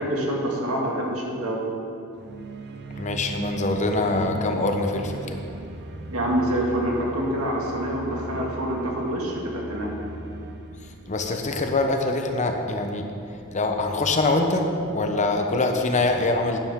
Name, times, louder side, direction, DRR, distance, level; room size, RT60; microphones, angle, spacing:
voice 1, 0.0-1.6 6.1-9.9, right 1 dB, 75° right, -2 dB, 2.0 m, -26 dB
sound 1, 2.1-12.2, right 3 dB, 50° right, 0.6 m, -38 dB
voice 2, 3.0-5.4 11.1-13.0 13.5-16.6, left 2 dB, 35° left, 4 dB, 0.9 m, -24 dB
11.5 x 10.5 x 3.7 m, 2.6 s
head